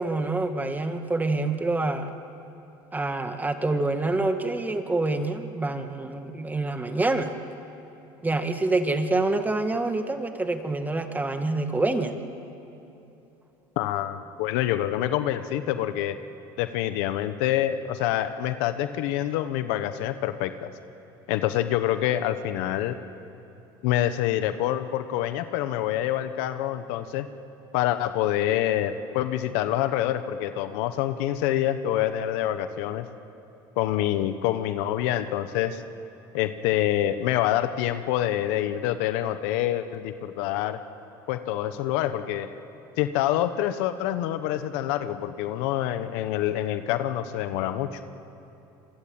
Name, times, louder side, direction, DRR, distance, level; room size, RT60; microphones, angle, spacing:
voice 1, 0.0-2.1 2.9-7.3 8.2-12.1, right 2 dB, 15° right, 7 dB, 2.0 m, -26 dB
voice 2, 13.8-16.2 16.6-20.7 21.3-23.0 23.8-27.3 27.7-33.1 33.8-35.8 36.3-40.8 41.3-42.5 43.0-48.0, left 12 dB, 80° left, 10 dB, 1.1 m, -26 dB
26.5 x 22.5 x 9.0 m, 2.8 s
supercardioid pair, 90°, 11 cm